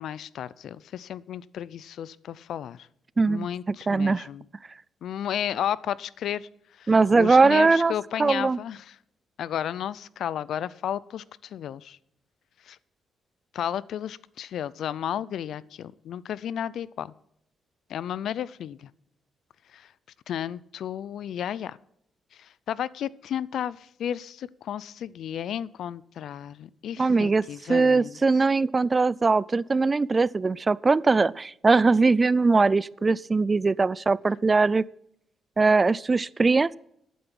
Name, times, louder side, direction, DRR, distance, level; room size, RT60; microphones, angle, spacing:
voice 1, 0.0-2.9 3.3-4.4 5.0-6.5 6.8-8.9 9.4-12.0 12.7-12.8 13.5-17.1 17.9-18.9 19.7-19.9 20.3-21.8 22.3-28.2, left 10 dB, 70° left, 20 dB, 0.5 m, -33 dB
voice 2, 3.2-3.5 3.9-4.3 6.9-7.9 8.2-8.6 27.0-27.4 27.7-34.8 35.6-36.8, right 3 dB, 25° right, 22 dB, 0.3 m, -21 dB
11.5 x 9.4 x 6.1 m, 0.73 s
cardioid pair, 105°, 0 cm